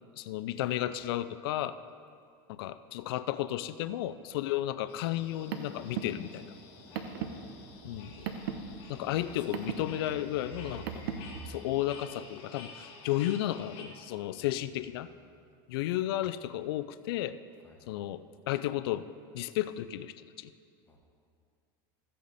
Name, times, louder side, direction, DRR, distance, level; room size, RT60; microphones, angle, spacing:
voice 1, 0.2-1.7 2.5-6.5 7.8-8.3 8.9-10.9 11.4-15.1 15.7-17.4 17.9-19.1 19.3-20.5, left 13 dB, 85° left, 13 dB, 0.4 m, -33 dB
sound 1, 4.9-13.8, left 4 dB, 45° left, 1.7 m, -51 dB
Car, 5.2-11.4, right 7 dB, 80° right, 0.9 m, -39 dB
voice 2, 6.8-7.4 8.9-9.6 14.3-14.5 17.6-17.8 20.9-21.0, left 2 dB, 15° left, -1 dB, 1.4 m, -57 dB
14.0 x 8.4 x 4.1 m, 2.3 s
supercardioid pair, 150°, 12 cm